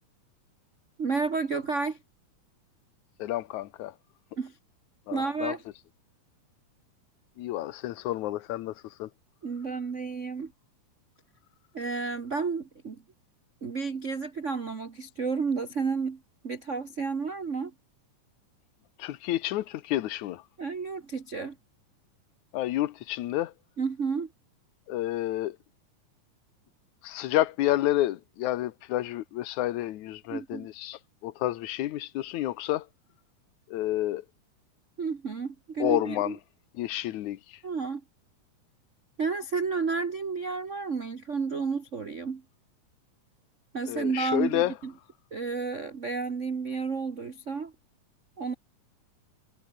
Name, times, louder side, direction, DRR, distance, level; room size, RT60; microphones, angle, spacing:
voice 1, 1.0-2.0 4.4-4.6 5.1-5.6 9.4-10.5 11.7-13.0 13.6-17.7 20.6-21.6 23.8-24.3 30.3-30.7 35.0-36.3 37.6-38.0 39.2-42.4 43.7-44.9 45.3-47.7 48.4-48.5, right 4 dB, 65° right, 0.7 m, -31 dB
voice 2, 3.2-3.9 5.1-5.5 7.4-8.7 9.0-9.1 19.0-20.4 22.5-23.5 24.9-25.6 27.0-32.9 33.7-34.2 35.8-36.4 36.8-37.6 43.9-44.7, left 14 dB, 70° left, 2.3 m, -30 dB
omnidirectional pair, 3.7 m